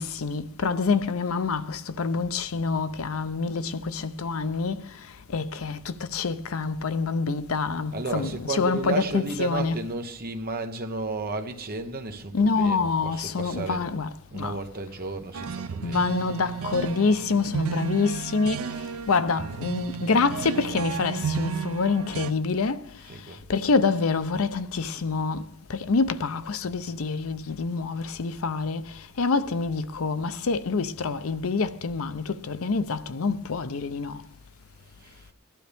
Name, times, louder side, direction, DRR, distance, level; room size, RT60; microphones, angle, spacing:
voice 1, 0.0-4.9 5.3-9.8 12.3-14.6 15.8-18.7 19.1-22.9 23.5-34.2, left 4 dB, 70° left, 0.6 m, -26 dB
voice 2, 7.9-13.9 14.3-16.1 23.0-23.4 35.0-35.3, right 3 dB, 45° right, 1.1 m, -33 dB
sound 1, 15.3-22.3, right 6 dB, 70° right, 0.5 m, -33 dB
19.0 x 12.0 x 3.5 m
head